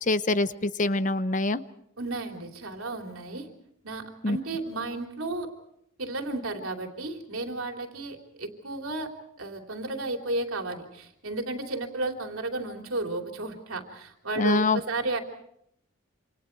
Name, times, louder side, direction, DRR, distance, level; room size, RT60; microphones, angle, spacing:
voice 1, 0.0-1.6 4.2-4.4 14.4-14.8, left 2 dB, 35° left, 13 dB, 0.8 m, -25 dB
voice 2, 2.0-3.5 3.8-5.5 6.0-9.1 9.4-15.2, right 2 dB, 80° right, 3 dB, 3.3 m, -33 dB
28.0 x 27.0 x 4.6 m, 0.72 s
head